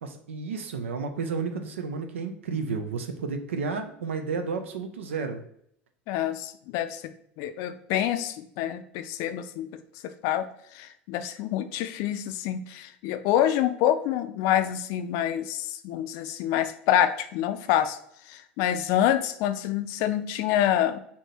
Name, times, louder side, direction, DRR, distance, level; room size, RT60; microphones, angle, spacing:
voice 1, 0.0-5.4, right 5 dB, 80° right, 7 dB, 0.4 m, -32 dB
voice 2, 6.1-7.0 7.4-9.7 10.0-10.5 10.7-18.0 18.3-21.0, left 11 dB, 55° left, 11 dB, 0.4 m, -26 dB
3.5 x 2.7 x 4.1 m, 0.69 s
hypercardioid pair, 75°, 7 cm